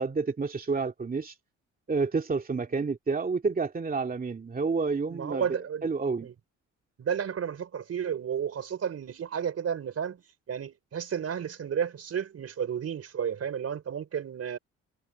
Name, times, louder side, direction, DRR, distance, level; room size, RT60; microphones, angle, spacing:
voice 1, 0.0-1.3 1.9-5.5 5.8-6.3, right 4 dB, 30° right, 2.4 m, -29 dB
voice 2, 5.1-5.8 6.2-6.3 7.0-10.2 10.5-14.6, right 8 dB, 55° right, 3.6 m, -32 dB
cardioid pair, 90°, 30 cm